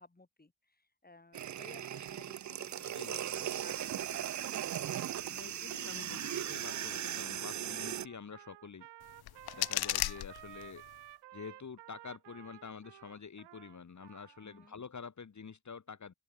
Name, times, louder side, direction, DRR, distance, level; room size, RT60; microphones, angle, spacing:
voice 1, 0.0-3.3 3.6-4.5 14.4-14.7, left 2 dB, 20° left, 3.2 m, -57 dB
sound 1, 1.3-8.1, right 10 dB, 45° right, 0.5 m, -38 dB
voice 2, 2.8-3.5 3.9-4.2 5.3-8.9 9.5-10.8 11.3-16.1, left 5 dB, 45° left, 1.6 m, -48 dB
Trumpet, 6.4-14.7, right 15 dB, 85° right, 0.7 m, -54 dB
sound 2, 9.0-11.0, left 15 dB, 65° left, 0.5 m, -36 dB
open air
cardioid pair, 50°, 40 cm